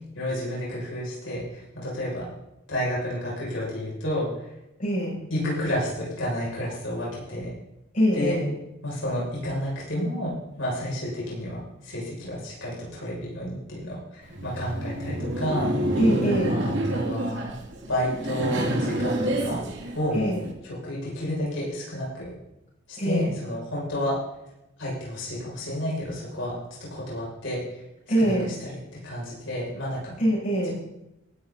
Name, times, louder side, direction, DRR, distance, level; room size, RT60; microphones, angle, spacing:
voice 1, 0.1-2.3 2.7-4.5 5.3-7.5 8.1-8.4 8.8-16.0 16.5-17.6 17.9-19.6 19.9-20.3 20.6-22.3 22.9-24.2 24.8-26.6 26.9-27.8 28.2-28.8 29.0-30.2 30.6-30.7, left 1 dB, 85° left, -5 dB, 6.9 m, -30 dB
voice 2, 4.8-5.2 7.9-8.5 16.0-16.7 20.1-20.4 23.0-23.3 28.1-28.5 30.2-30.7, equal, 45° left, -5 dB, 7.4 m, -24 dB
Laughter, 14.2-20.5, right 1 dB, 65° right, 2.7 m, -28 dB
18.5 x 12.5 x 4.2 m, 0.87 s
head